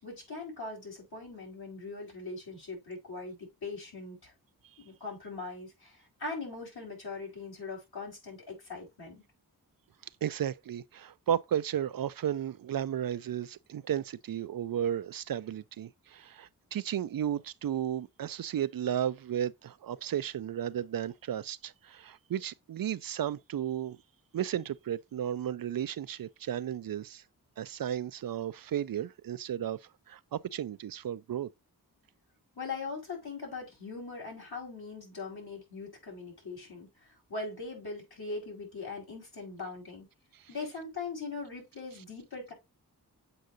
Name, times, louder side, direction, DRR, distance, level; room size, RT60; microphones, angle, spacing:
voice 1, 0.0-4.3 4.8-9.2 32.6-40.1 40.5-42.5, left 3 dB, 75° left, 4.2 m, -41 dB
voice 2, 10.2-24.0 24.3-27.2 27.6-31.5 40.3-40.5, right 10 dB, 65° right, 0.5 m, -34 dB
7.8 x 4.6 x 2.6 m
cardioid pair, 55°, 38 cm